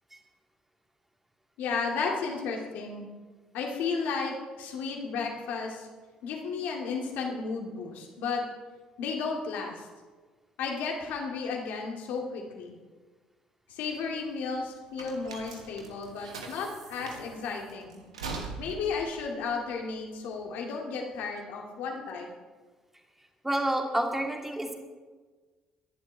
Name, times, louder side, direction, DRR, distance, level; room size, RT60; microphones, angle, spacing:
voice 1, 1.6-3.1 3.5-5.9 6.2-8.4 9.0-9.9 10.6-12.8 13.7-18.0 18.6-22.3, left 5 dB, 65° left, 0 dB, 2.3 m, -33 dB
sound 1, 13.7-20.5, right 4 dB, 80° right, 1.3 m, -43 dB
voice 2, 23.4-24.7, right 1 dB, 10° right, 2 dB, 2.4 m, -28 dB
23.0 x 11.0 x 3.4 m, 1.4 s
figure-of-eight pair, 45°, 3 cm